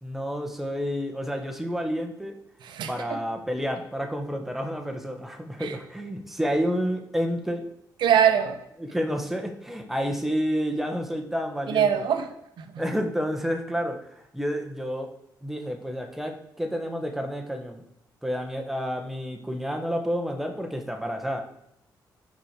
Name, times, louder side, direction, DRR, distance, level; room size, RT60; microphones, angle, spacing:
voice 1, 0.0-2.3 2.9-7.7 8.8-12.1 12.8-15.1 15.4-17.8 18.2-21.4, equal, 5° right, 4 dB, 1.0 m, -30 dB
voice 2, 2.7-3.2 5.6-5.7 8.0-8.6 11.7-12.2 12.6-12.7, right 9 dB, 80° right, 6 dB, 0.8 m, -22 dB
5.3 x 4.7 x 4.3 m, 0.80 s
cardioid pair, 80°, 8 cm